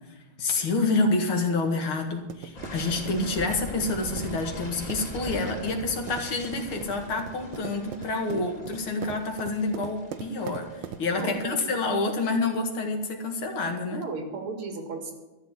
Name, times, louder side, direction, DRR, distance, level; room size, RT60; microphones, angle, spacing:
voice 1, 0.4-14.0, left 3 dB, 75° left, 4 dB, 2.7 m, -28 dB
sound 1, 1.8-11.5, right 9 dB, 70° right, 1.4 m, -42 dB
sound 2, 2.5-12.4, left 1 dB, 35° left, 3.4 m, -41 dB
voice 2, 11.2-11.7 13.9-15.1, right 3 dB, 90° right, 4 dB, 3.0 m, -35 dB
13.5 x 7.4 x 9.7 m, 1.1 s
omnidirectional pair, 2.3 m